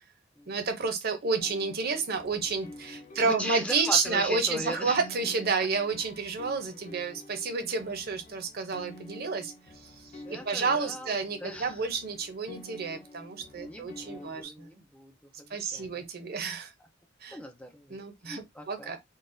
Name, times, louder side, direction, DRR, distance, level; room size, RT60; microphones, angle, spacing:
voice 1, 0.5-9.5 9.8-9.9 10.3-14.7 15.5-16.7 17.2-17.4 17.9-19.0, right 4 dB, 50° right, 0.7 m, -30 dB
sound 1, 1.4-14.4, left 1 dB, 40° left, 0.8 m, -49 dB
voice 2, 3.2-5.0 10.1-11.8 13.5-16.0 17.3-18.9, equal, 5° left, 0.4 m, -39 dB
3.9 x 2.2 x 2.5 m
head